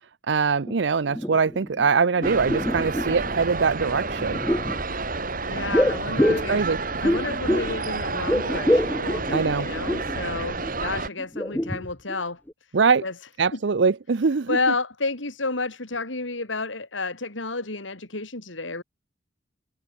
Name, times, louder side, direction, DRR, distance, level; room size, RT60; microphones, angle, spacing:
voice 1, 0.3-4.4 6.3-7.1 9.3-9.7 12.7-13.1 13.4-14.6, right 5 dB, 65° right, 0.6 m, -23 dB
sound 1, 0.7-0.8 1.0-1.9 2.2-3.3 4.1-4.8 5.7-7.8 8.1-10.2 10.6-10.7 11.2-12.2 12.5-12.6, equal, 10° left, 1.2 m, -26 dB
sound 2, 2.2-11.1, right 3 dB, 45° right, 4.7 m, -30 dB
voice 2, 5.5-6.6 7.0-12.4 13.0-13.1 13.5-13.6 14.5-18.8, left 3 dB, 80° left, 3.7 m, -30 dB
head